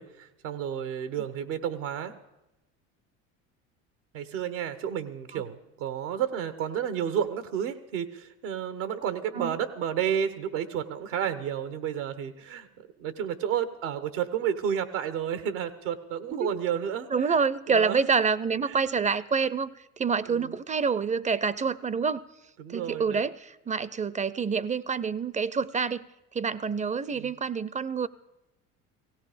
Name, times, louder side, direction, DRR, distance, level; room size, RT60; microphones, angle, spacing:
voice 1, 0.0-2.1 4.1-17.1 17.7-18.0 18.7-18.8 20.3-20.5 22.6-23.2 27.1-27.3, right 9 dB, 85° right, 12 dB, 1.2 m, -31 dB
voice 2, 17.1-22.3 22.7-26.1 26.3-28.1, right 5 dB, 20° right, 19 dB, 0.5 m, -27 dB
17.0 x 16.5 x 5.0 m, 0.95 s
hypercardioid pair, 75°, 37 cm